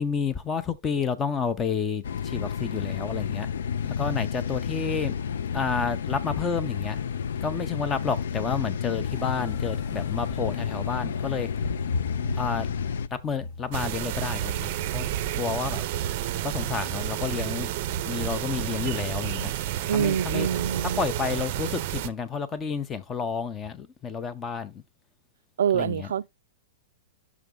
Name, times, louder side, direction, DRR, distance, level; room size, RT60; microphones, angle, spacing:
voice 1, 0.0-3.5 3.8-5.1 5.5-7.0 7.4-11.5 12.4-12.7 13.1-15.0 15.4-15.8 16.4-17.7 18.1-19.5 19.9-20.5 20.8-24.8 25.7-26.1, left 6 dB, 10° left, 0.5 m, -30 dB
sound 1, 2.0-13.1, left 7 dB, 85° left, 0.4 m, -31 dB
sound 2, 9.0-16.5, left 3 dB, 50° left, 1.0 m, -37 dB
sound 3, 13.7-22.1, right 12 dB, 35° right, 0.5 m, -30 dB
voice 2, 19.9-21.0 25.6-26.3, right 9 dB, 85° right, 0.3 m, -26 dB
6.1 x 3.4 x 5.1 m
supercardioid pair, 175°, 0 cm